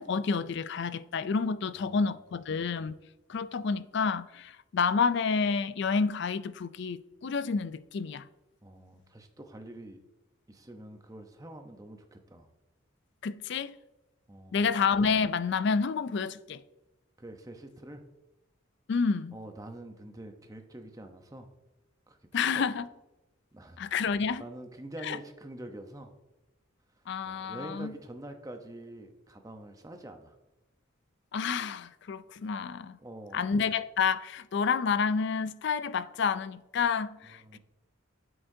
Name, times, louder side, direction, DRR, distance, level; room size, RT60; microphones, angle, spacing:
voice 1, 0.0-3.0 3.3-8.3 13.2-13.8 14.5-16.6 18.9-19.4 22.3-22.9 23.8-24.4 25.0-25.2 27.1-27.9 31.3-33.0 33.3-37.6, left 5 dB, 55° left, 0.4 m, -29 dB
voice 2, 1.8-2.2 2.5-2.7 8.6-10.0 10.5-12.5 14.3-14.7 17.2-18.1 19.3-21.5 22.1-22.6 23.5-24.0 24.4-26.2 27.0-30.4 33.0-33.5 37.3-37.6, right 1 dB, 15° right, 0.8 m, -46 dB
9.4 x 7.9 x 2.7 m
head